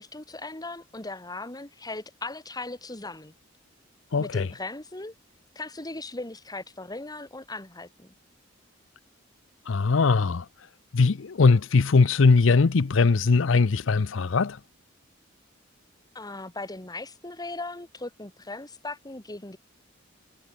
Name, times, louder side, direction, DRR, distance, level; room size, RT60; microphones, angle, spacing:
voice 1, 0.0-3.3 4.2-5.1 5.6-8.1 16.1-19.6, left 2 dB, 20° left, 2.1 m, -38 dB
voice 2, 4.1-4.5 9.7-10.5 10.9-14.6, left 4 dB, 70° left, 0.6 m, -20 dB
head